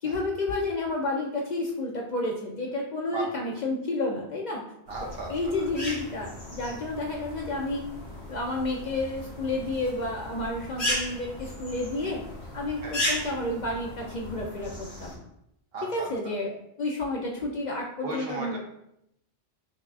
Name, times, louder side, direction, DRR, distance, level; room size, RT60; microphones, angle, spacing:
voice 1, 0.0-4.6 5.3-7.8 8.3-12.2 12.5-15.1 15.8-18.6, left 2 dB, 55° left, -1 dB, 0.5 m, -30 dB
sound 1, 4.9-15.1, left 1 dB, 80° left, 1.8 m, -36 dB
voice 2, 4.9-5.3 5.6-5.7 12.8-12.9 15.7-16.1 18.0-18.6, right 2 dB, 65° right, 1 dB, 0.9 m, -35 dB
5.3 x 2.4 x 2.3 m, 0.78 s
omnidirectional pair, 1.1 m